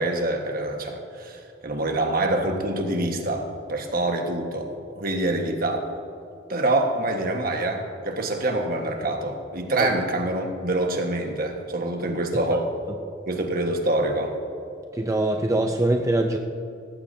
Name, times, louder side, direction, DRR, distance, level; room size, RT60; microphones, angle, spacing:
voice 1, 0.0-5.9 6.5-12.7 13.3-14.4, right 2 dB, 50° right, 3 dB, 1.4 m, -26 dB
voice 2, 14.9-16.4, right 1 dB, 15° right, 4 dB, 0.5 m, -23 dB
17.5 x 15.0 x 2.7 m, 2.5 s
head